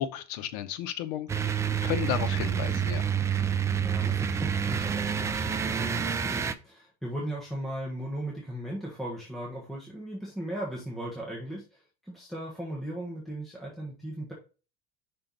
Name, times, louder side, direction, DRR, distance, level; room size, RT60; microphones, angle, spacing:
voice 1, 0.0-3.0, left 11 dB, 80° left, 0.9 m, -33 dB
sound 1, 1.3-6.5, right 7 dB, 15° right, 0.4 m, -28 dB
voice 2, 3.8-14.3, right 1 dB, ahead, 1.3 m, -37 dB
5.7 x 4.4 x 3.9 m
cardioid pair, 150°, 20 cm